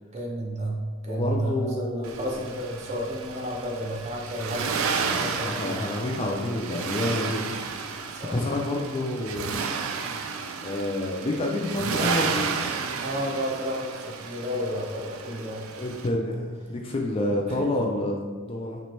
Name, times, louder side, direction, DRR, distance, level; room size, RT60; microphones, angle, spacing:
voice 1, 0.1-5.8 7.8-8.4 13.0-15.7 17.5-17.6, equal, 30° right, -2 dB, 0.6 m, -32 dB
voice 2, 1.1-2.5 5.4-7.5 8.3-9.6 10.6-12.5 15.8-18.8, left 1 dB, 25° left, 0 dB, 0.3 m, -28 dB
Accelerating revving vroom, 2.0-16.1, right 5 dB, 70° right, 0.3 m, -32 dB
3.1 x 3.0 x 4.3 m, 1.5 s
head